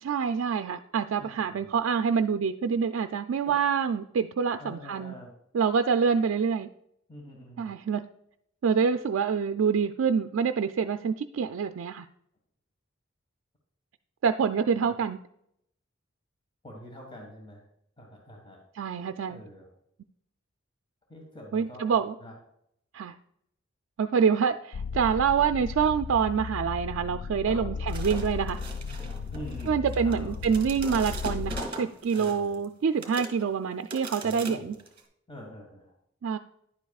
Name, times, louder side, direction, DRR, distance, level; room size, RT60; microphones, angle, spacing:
voice 1, 0.0-5.1 5.5-6.7 7.6-8.0 8.6-12.1 14.2-15.2 18.7-19.4 21.5-22.1 22.9-23.1 24.0-28.6 29.7-34.7 36.2-36.4, right 6 dB, 75° right, 7 dB, 0.4 m, -26 dB
voice 2, 1.2-1.7 4.6-5.3 7.1-7.7 14.8-14.9 16.6-17.6 18.0-18.6 19.3-19.7 21.1-22.3 27.4-27.8 29.3-30.3 30.9-31.2 32.1-32.5 34.2-34.7 35.3-35.9, equal, 25° left, -1 dB, 1.6 m, -44 dB
sound 1, 24.7-31.6, left 5 dB, 90° left, 0.3 m, -35 dB
sound 2, 27.9-32.6 33.0-33.5 33.9-35.0, right 2 dB, 30° right, 2.1 m, -40 dB
10.5 x 8.2 x 2.4 m, 0.74 s
head